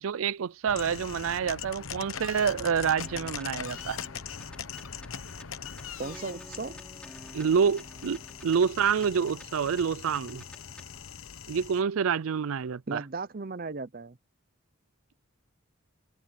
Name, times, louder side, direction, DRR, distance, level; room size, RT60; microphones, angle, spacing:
voice 1, 0.0-4.0 7.3-10.4 11.5-13.0, right 6 dB, 80° right, 0.4 m, -27 dB
sound 1, 0.7-11.8, left 7 dB, 80° left, 1.0 m, -41 dB
sound 2, 3.0-11.0, left 1 dB, 5° left, 3.3 m, -51 dB
voice 2, 6.0-6.8 12.9-14.2, right 3 dB, 45° right, 0.7 m, -36 dB
head